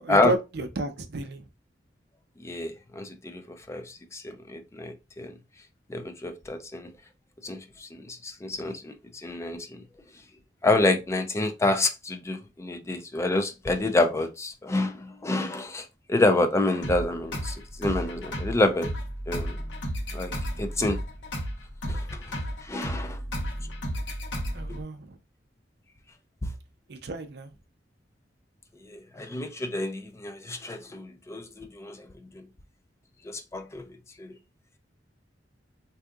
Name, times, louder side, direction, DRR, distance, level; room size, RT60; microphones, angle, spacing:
voice 1, 0.0-1.5 24.5-25.2 26.9-27.5, right 2 dB, 65° right, 0.5 m, -32 dB
voice 2, 2.4-3.4 3.7-5.3 5.9-6.9 7.4-8.9 9.2-9.8 10.6-18.9 19.3-19.6 20.1-20.3 20.6-21.0 21.9-22.2 22.6-23.2 26.4-26.5 28.9-32.1 33.3-33.9 34.2-34.3, left 2 dB, 15° left, 0.3 m, -28 dB
sound 1, 16.8-24.8, equal, 80° left, 1.0 m, -33 dB
3.5 x 2.7 x 2.3 m
head